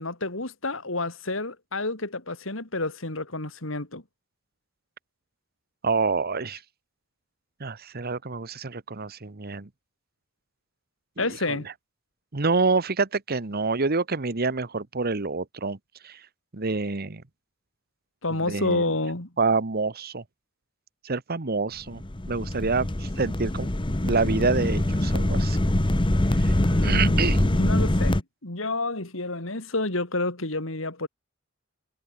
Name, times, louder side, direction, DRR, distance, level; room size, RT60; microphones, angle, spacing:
voice 1, 0.0-4.0 11.2-11.7 18.2-19.3 26.6-31.1, left 2 dB, 70° left, 3.6 m, -29 dB
voice 2, 5.8-6.6 7.6-9.7 11.2-11.6 12.3-15.8 16.0-16.2 16.5-17.2 18.4-18.8 19.4-20.2 21.0-22.0 22.3-23.7 24.0-25.6 26.4-26.6 26.8-27.4, right 4 dB, 50° right, 1.2 m, -27 dB
sound 1, 21.9-28.2, left 1 dB, 25° left, 1.1 m, -24 dB
head